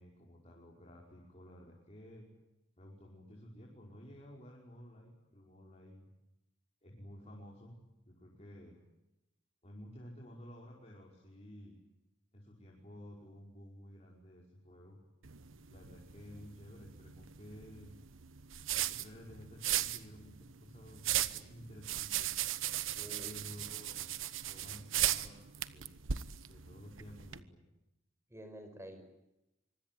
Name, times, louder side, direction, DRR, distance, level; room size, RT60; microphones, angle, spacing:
voice 1, 0.0-2.3 2.8-6.1 6.8-7.8 8.0-8.8 9.6-11.8 12.3-15.0 15.7-17.9 18.7-22.3 22.9-24.1 24.5-25.9 26.5-27.6, equal, 35° left, -2 dB, 5.4 m, -53 dB
sound 1, 15.2-27.4, right 11 dB, 80° right, 1.2 m, -38 dB
voice 2, 23.0-23.3 28.3-29.0, equal, 15° right, 8 dB, 5.4 m, -48 dB
25.5 x 24.5 x 9.3 m, 0.91 s
head